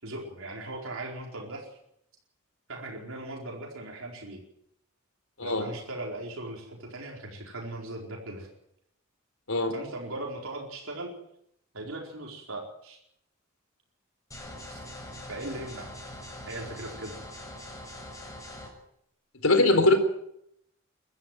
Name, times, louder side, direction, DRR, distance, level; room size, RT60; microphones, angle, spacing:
voice 1, 0.0-1.7 2.7-4.4 5.4-8.5 9.7-11.1 11.7-13.0 14.6-14.8 15.3-15.9 16.5-17.1, right 2 dB, 75° right, 0 dB, 4.5 m, -38 dB
sound 1, 14.3-18.7, left 1 dB, 15° left, 6.1 m, -43 dB
voice 2, 19.4-20.0, left 2 dB, 90° left, 8 dB, 4.0 m, -21 dB
23.0 x 13.5 x 9.3 m, 0.75 s
head